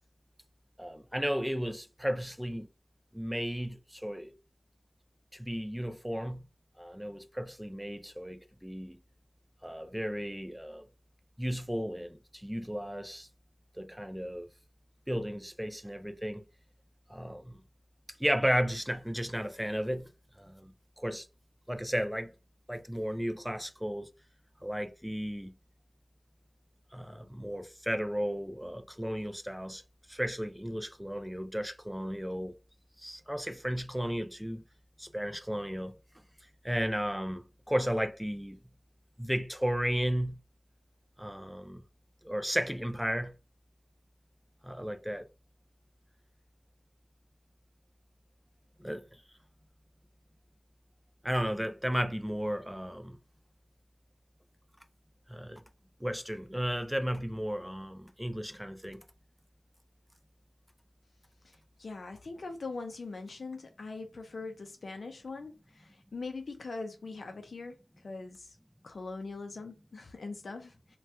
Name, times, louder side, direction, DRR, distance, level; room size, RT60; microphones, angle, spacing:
voice 1, 0.8-2.7 3.1-4.3 5.3-6.4 6.8-9.0 9.6-10.8 11.4-13.3 13.8-14.5 15.1-16.4 17.1-17.6 18.2-20.1 20.4-20.7 21.0-21.3 21.7-22.3 22.7-24.1 24.6-25.5 26.9-29.8 30.1-32.5 33.0-34.6 35.0-35.9 36.6-38.6 39.2-40.4 41.2-41.8 42.2-43.3 44.6-45.3 48.8-49.0 51.2-53.2 55.3-55.6 56.0-59.0, equal, 5° right, 0.3 m, -34 dB
voice 2, 61.4-68.6 68.8-71.0, left 3 dB, 65° left, 0.4 m, -42 dB
2.7 x 2.2 x 3.3 m
wide cardioid pair, 95°, 0 cm